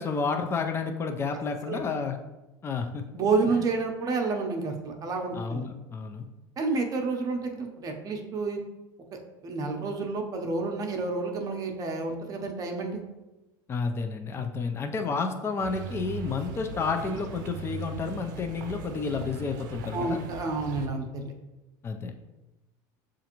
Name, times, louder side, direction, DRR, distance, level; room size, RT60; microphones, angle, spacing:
voice 1, 0.0-2.2 2.6-3.0 3.5-3.7 5.4-6.3 13.7-20.2 21.8-22.1, left 4 dB, 25° left, 5 dB, 0.4 m, -31 dB
voice 2, 3.1-5.6 6.6-8.6 9.4-13.0 19.9-21.3, right 3 dB, 40° right, 2 dB, 0.7 m, -29 dB
sound 1, 15.6-20.9, right 5 dB, 85° right, 0.4 m, -39 dB
6.7 x 2.5 x 2.9 m, 1.0 s
supercardioid pair, 105°, 10 cm